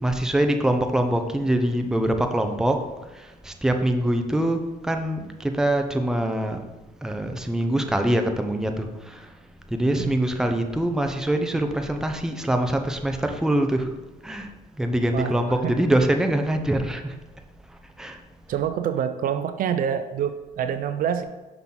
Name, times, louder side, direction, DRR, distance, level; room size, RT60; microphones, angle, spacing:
voice 1, 0.0-6.6 7.0-9.3 9.7-14.0 14.2-17.2 17.7-18.2, right 1 dB, 5° right, 5 dB, 0.6 m, -24 dB
voice 2, 15.1-15.8 18.5-21.2, right 8 dB, 55° right, 10 dB, 0.5 m, -26 dB
5.9 x 5.6 x 3.8 m, 1.2 s
cardioid pair, 110°, 17 cm